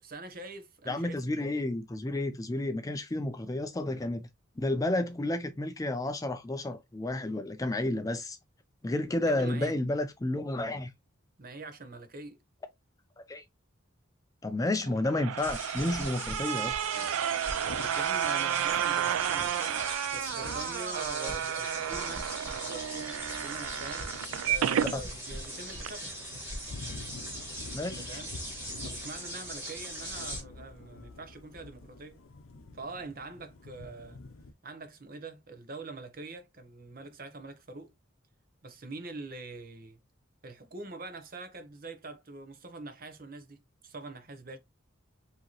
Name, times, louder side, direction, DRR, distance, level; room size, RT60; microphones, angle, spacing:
voice 1, 0.0-1.5 9.2-9.7 11.4-12.4 17.9-19.8 20.1-24.1 24.4-26.2 28.0-28.3 28.8-32.2 32.7-34.2 34.6-37.9 38.6-40.0 40.4-44.6, right 2 dB, 45° right, 0.8 m, -44 dB
voice 2, 0.9-4.3 4.6-8.4 8.8-10.9 13.2-13.4 14.4-16.7 24.9-25.0 27.7-28.1, left 1 dB, 15° left, 0.4 m, -31 dB
sound 1, 14.8-25.0 25.4-25.5 25.8-25.9, right 10 dB, 85° right, 0.3 m, -32 dB
sound 2, 15.4-30.4, right 1 dB, 10° right, 1.8 m, -40 dB
Thunder / Rain, 17.5-34.5, left 3 dB, 80° left, 0.7 m, -49 dB
4.9 x 2.8 x 2.9 m
head